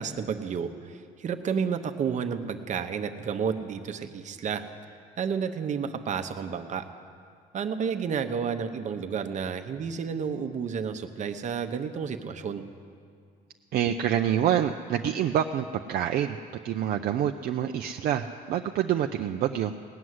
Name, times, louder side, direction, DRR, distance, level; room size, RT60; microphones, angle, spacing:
voice 1, 0.0-4.6 5.2-6.9 7.5-12.6, right 6 dB, 45° right, 7 dB, 0.9 m, -31 dB
voice 2, 13.7-16.4 16.6-19.7, right 10 dB, 65° right, 5 dB, 0.5 m, -27 dB
18.0 x 6.2 x 9.6 m, 2.2 s
cardioid pair, 110°, 17 cm